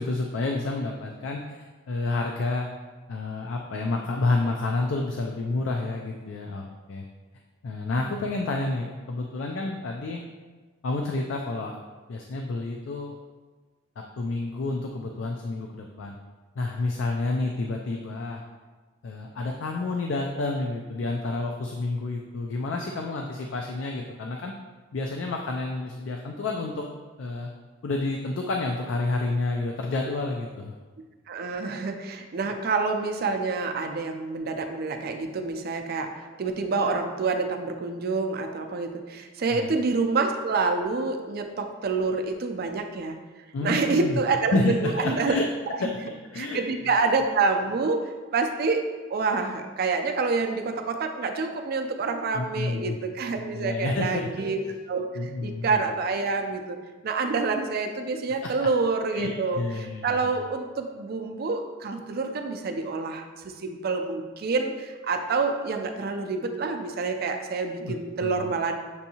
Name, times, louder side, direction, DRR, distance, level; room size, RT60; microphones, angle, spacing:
voice 1, 0.0-1.6 1.9-2.7 3.1-7.0 7.6-10.2 10.8-11.8 12.1-13.1 14.0-16.2 16.6-18.4 19.0-24.5 24.9-26.8 27.2-27.5 27.8-30.7 39.5-39.7 43.5-44.2 44.5-45.4 45.8-45.9 46.3-46.9 52.3-53.0 53.5-54.3 55.1-55.8 58.4-58.7 59.1-60.2 67.8-68.5, left 3 dB, 65° left, 1 dB, 0.4 m, -29 dB
voice 2, 31.3-43.2 43.6-45.4 46.4-48.0 48.3-56.8 57.0-68.8, right 4 dB, 50° right, 5 dB, 0.4 m, -27 dB
6.8 x 2.7 x 2.8 m, 1.4 s
head